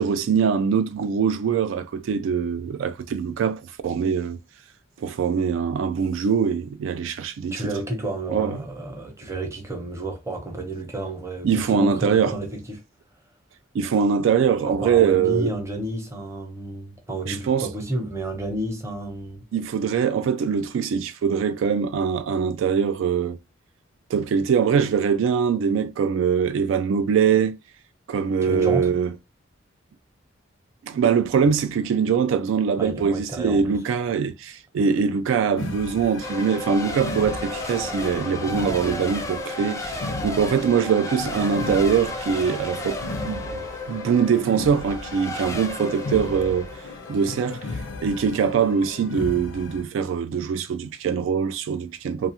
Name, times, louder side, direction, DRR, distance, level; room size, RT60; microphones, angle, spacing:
voice 1, 0.0-4.4 5.0-7.5 8.3-8.6 11.4-12.3 13.7-15.5 17.3-17.7 19.5-23.4 24.1-27.6 28.1-29.1 30.8-43.6 43.9-46.7 47.1-47.6 48.0-52.3, right 6 dB, 85° right, 0.3 m, -23 dB
voice 2, 7.5-12.8 14.6-19.5 28.4-29.0 32.8-33.6, right 1 dB, 15° right, 0.7 m, -31 dB
sound 1, 35.6-49.8, left 3 dB, 80° left, 0.5 m, -36 dB
Race car auto racing / Accelerating revving vroom / Mechanisms, 36.2-48.7, left 1 dB, 15° left, 0.3 m, -33 dB
2.3 x 2.3 x 2.8 m
head